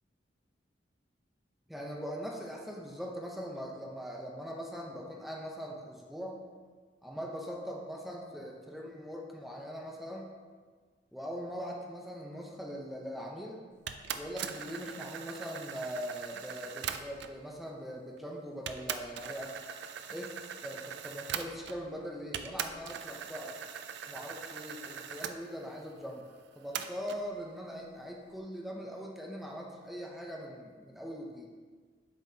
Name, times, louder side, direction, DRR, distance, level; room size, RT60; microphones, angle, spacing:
voice 1, 1.7-6.4 7.0-10.3 11.1-13.7 14.1-19.5 20.1-20.3 20.6-23.6 24.1-26.2 26.6-31.5, equal, ahead, -1 dB, 0.6 m, -41 dB
sound 1, 13.9-17.4 18.2-18.3 18.7-21.9 22.3-25.4 26.7-27.2, right 8 dB, 65° right, 0.4 m, -41 dB
7.3 x 5.5 x 2.7 m, 1.5 s
head